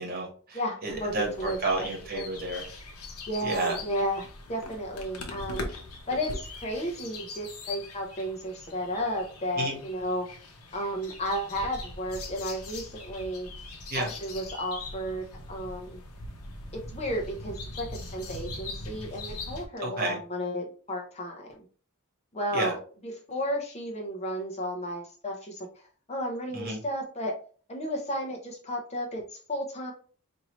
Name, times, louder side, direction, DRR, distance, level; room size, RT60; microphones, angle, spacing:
voice 1, 0.0-2.6 3.4-3.8 9.6-9.8 13.9-14.1 19.8-20.2 22.5-22.7 26.5-26.8, right 2 dB, 45° right, 1 dB, 1.1 m, -31 dB
voice 2, 0.5-1.6 2.1-2.3 3.3-5.6 6.1-10.3 10.7-13.5 13.9-16.0 16.7-21.6 22.3-25.7 26.1-27.3 27.7-29.2 29.5-29.9, equal, 30° left, 2 dB, 0.7 m, -33 dB
sound 1, 0.9-19.7, left 2 dB, 80° left, 0.9 m, -41 dB
4.5 x 2.6 x 3.0 m, 0.42 s
head